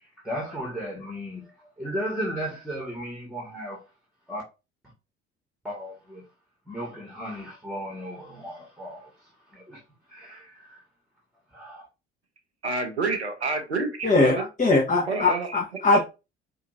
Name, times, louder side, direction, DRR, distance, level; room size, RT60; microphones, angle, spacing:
voice 1, 0.0-3.8 4.3-4.4 5.6-6.2 6.7-9.8 10.1-10.8 11.5-11.9, equal, ahead, 1.6 m, -35 dB
voice 2, 12.6-14.4 15.1-15.5, right 3 dB, 90° right, 0.6 m, -28 dB
voice 3, 14.0-16.0, left 3 dB, 25° left, 1.1 m, -21 dB
4.9 x 2.7 x 2.6 m
figure-of-eight pair, 55°, 32 cm